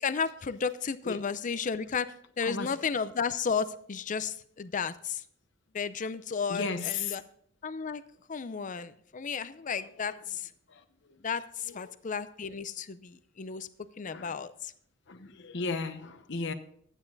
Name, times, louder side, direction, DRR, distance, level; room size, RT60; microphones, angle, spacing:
voice 1, 0.0-5.2 5.7-7.2 7.6-8.0 8.3-10.5 11.2-13.7 14.0-14.7, left 6 dB, 40° left, 14 dB, 0.5 m, -33 dB
voice 2, 6.5-7.2 10.0-10.1 11.7-11.8 14.1-14.3 15.1-16.5, left 4 dB, 65° left, 9 dB, 0.9 m, -34 dB
12.0 x 9.0 x 4.0 m, 0.65 s
head